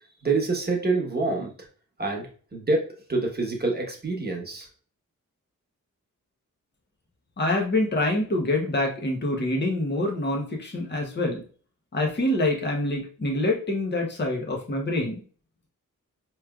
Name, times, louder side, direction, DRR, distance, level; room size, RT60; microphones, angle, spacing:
voice 1, 0.2-1.5 2.0-4.7, right 3 dB, 30° right, 0 dB, 1.1 m, -26 dB
voice 2, 7.4-11.4 11.9-15.2, left 2 dB, 30° left, 0 dB, 0.9 m, -26 dB
4.8 x 3.1 x 2.3 m, 0.42 s
wide cardioid pair, 95°, 33 cm